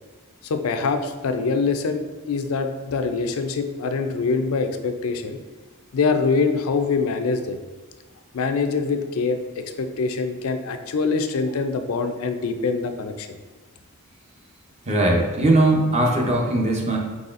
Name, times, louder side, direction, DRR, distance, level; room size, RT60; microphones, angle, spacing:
voice 1, 0.4-2.0 2.3-5.4 5.9-7.6 8.3-13.3, left 4 dB, 75° left, 7 dB, 0.4 m, -24 dB
voice 2, 14.9-17.0, right 1 dB, 30° right, -1 dB, 0.6 m, -19 dB
4.6 x 4.0 x 2.5 m, 1.3 s
head